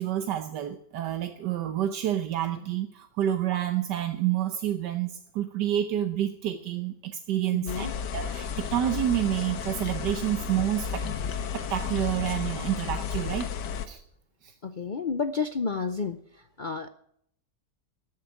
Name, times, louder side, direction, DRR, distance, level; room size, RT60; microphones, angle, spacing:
voice 1, 0.0-7.9 8.1-13.5 13.9-14.0 14.4-14.5, right 12 dB, 80° right, 7 dB, 1.5 m, -29 dB
voice 2, 7.5-7.9 14.6-16.2 16.6-16.9, left 5 dB, 70° left, 9 dB, 0.4 m, -30 dB
sound 1, 7.7-13.9, left 7 dB, 90° left, 1.6 m, -33 dB
13.5 x 8.9 x 9.9 m, 0.69 s
omnidirectional pair, 1.8 m